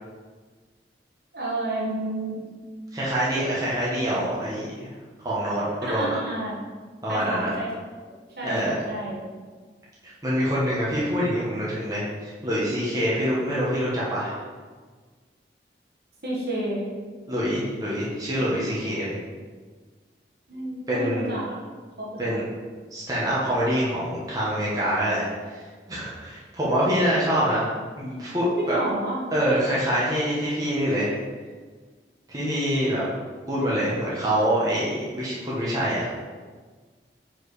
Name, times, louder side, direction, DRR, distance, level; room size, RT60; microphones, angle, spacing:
voice 1, 1.3-2.4 5.8-6.6 7.1-7.7 8.4-9.2 16.2-16.9 20.5-21.6 22.0-22.4 28.6-29.2, right 1 dB, 60° right, -5 dB, 1.6 m, -30 dB
voice 2, 2.9-4.9 5.2-6.2 7.0-7.5 8.4-8.8 10.2-14.4 17.3-19.2 20.9-21.2 22.2-22.5 22.9-25.2 25.5-25.6 25.9-27.7 28.0-28.8 29.3-31.1 32.3-33.0 33.5-36.1, equal, 20° right, -7 dB, 1.2 m, -25 dB
4.8 x 4.6 x 4.8 m, 1.5 s
head